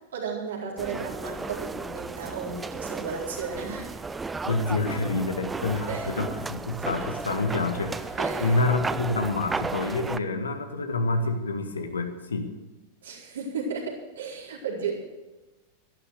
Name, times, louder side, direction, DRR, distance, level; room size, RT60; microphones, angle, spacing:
voice 1, 0.1-4.0 5.9-6.1 8.2-8.6 13.0-15.0, right 5 dB, 65° right, -3 dB, 4.4 m, -34 dB
sound 1, 0.8-10.2, right 4 dB, 15° right, 0.5 m, -34 dB
voice 2, 4.4-12.5, left 3 dB, 70° left, 7 dB, 1.6 m, -28 dB
13.0 x 11.5 x 6.7 m, 1.1 s
figure-of-eight pair, 90°, 0 cm